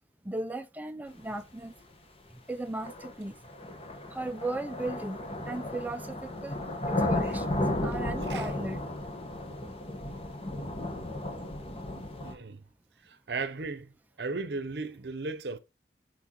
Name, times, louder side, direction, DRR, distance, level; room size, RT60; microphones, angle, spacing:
voice 1, 0.2-1.7 2.3-3.4 4.1-5.2 5.5-8.8, right 2 dB, 10° right, 0.4 m, -37 dB
sound 1, 1.8-1.9 2.8-12.3, left 1 dB, 35° left, 1.3 m, -34 dB
voice 2, 12.2-12.6 13.0-13.9 14.2-15.6, right 3 dB, 70° right, 0.7 m, -36 dB
6.5 x 6.2 x 3.0 m
head